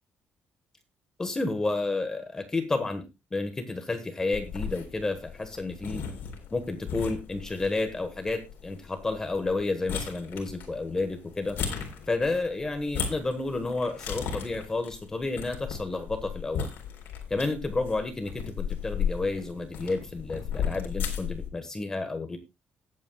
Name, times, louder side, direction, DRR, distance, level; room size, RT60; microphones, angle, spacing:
voice 1, 1.2-3.0 3.3-6.0 6.5-11.6 12.1-16.7 17.3-22.4, left 3 dB, 15° left, 7 dB, 1.3 m, -31 dB
sound 1, 4.3-21.5, left 7 dB, 65° left, 3.8 m, -36 dB
19.0 x 8.3 x 2.3 m, 0.25 s
cardioid pair, 180°, 4 cm